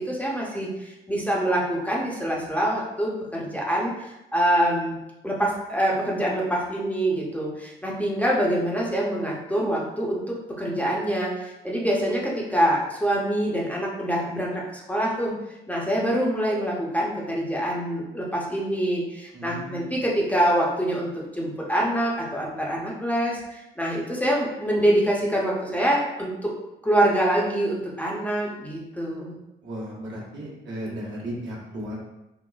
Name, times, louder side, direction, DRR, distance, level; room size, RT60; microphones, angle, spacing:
voice 1, 0.0-5.0 5.2-15.3 15.7-26.5 26.8-29.4, right 1 dB, 5° left, -4 dB, 0.6 m, -25 dB
voice 2, 19.3-20.0 29.6-31.9, equal, 65° right, -5 dB, 1.1 m, -35 dB
3.8 x 2.1 x 2.3 m, 0.92 s
cardioid pair, 90°, 20 cm